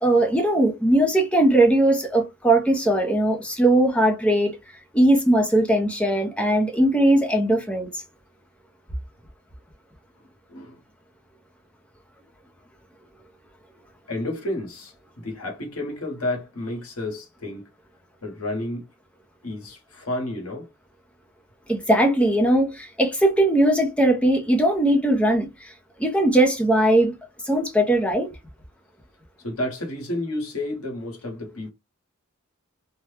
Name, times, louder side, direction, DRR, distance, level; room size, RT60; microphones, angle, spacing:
voice 1, 0.0-4.6 4.9-7.9 21.7-25.7 26.0-27.1 27.4-28.3, right 1 dB, 5° left, 0.6 m, -19 dB
voice 2, 10.5-10.8 14.1-17.6 18.2-18.8 19.4-20.7 29.4-31.7, left 1 dB, 80° left, 1.4 m, -31 dB
2.8 x 2.2 x 3.3 m
head